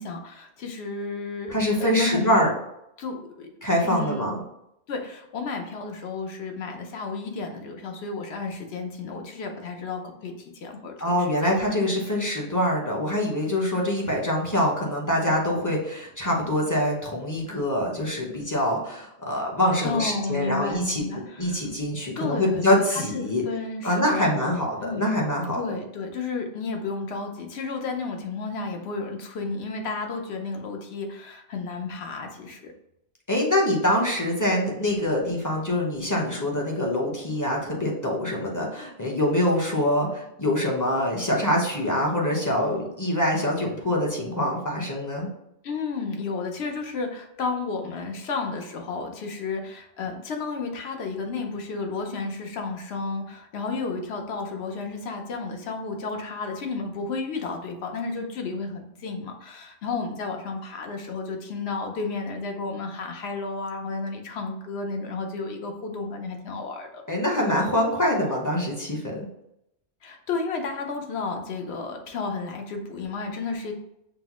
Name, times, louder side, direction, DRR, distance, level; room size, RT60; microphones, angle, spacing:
voice 1, 0.0-2.5 3.0-3.5 3.8-4.3 4.9-11.5 19.8-21.7 22.2-25.1 25.5-32.7 45.6-67.0 70.0-73.7, left 4 dB, 70° left, 3 dB, 0.9 m, -32 dB
voice 2, 1.5-2.5 3.6-4.4 11.0-21.1 21.4-23.4 23.8-25.6 33.3-45.3 67.1-69.3, left 1 dB, 20° left, -2 dB, 0.7 m, -24 dB
5.8 x 2.1 x 2.9 m, 0.81 s
omnidirectional pair, 1.2 m